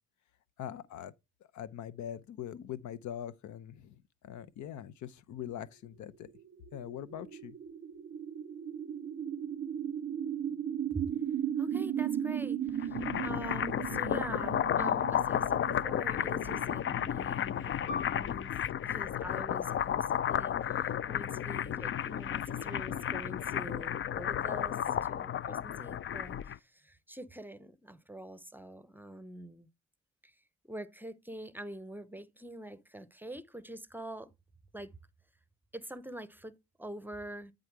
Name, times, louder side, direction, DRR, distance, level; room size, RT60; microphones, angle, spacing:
voice 1, 0.6-1.1 1.5-6.3 6.7-7.5, left 10 dB, 75° left, 0.7 m, -42 dB
sound 1, 6.3-18.4, right 9 dB, 40° right, 0.5 m, -37 dB
voice 2, 11.6-18.5 18.8-29.7 30.2-30.4 30.7-34.3 34.7-35.0 35.7-37.5, right 1 dB, 5° right, 0.8 m, -45 dB
sound 2, 12.7-26.6, left 10 dB, 40° left, 0.4 m, -33 dB
Piano, 17.9-22.9 23.3-23.4 24.2-24.6, left 5 dB, 90° left, 2.1 m, -47 dB
9.7 x 3.8 x 4.6 m
cardioid pair, 90°, 30 cm